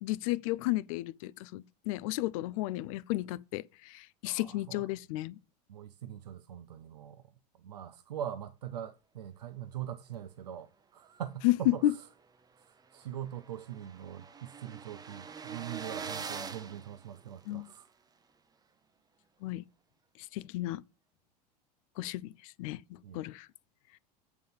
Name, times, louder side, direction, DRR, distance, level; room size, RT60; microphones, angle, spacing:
voice 1, 0.0-5.4 11.4-11.5 11.8-11.9 17.5-17.7 19.4-19.6 20.3-20.8 22.0-23.5, left 16 dB, 55° left, 0.4 m, -33 dB
voice 2, 4.2-4.9 5.7-7.2 7.6-12.0 12.6-17.9 23.0-23.3, right 10 dB, 75° right, 0.5 m, -42 dB
sound 1, 12.2-12.3 12.6-12.7 12.9-17.8, right 6 dB, 20° right, 0.8 m, -44 dB
8.3 x 3.8 x 6.7 m
figure-of-eight pair, 75°, 21 cm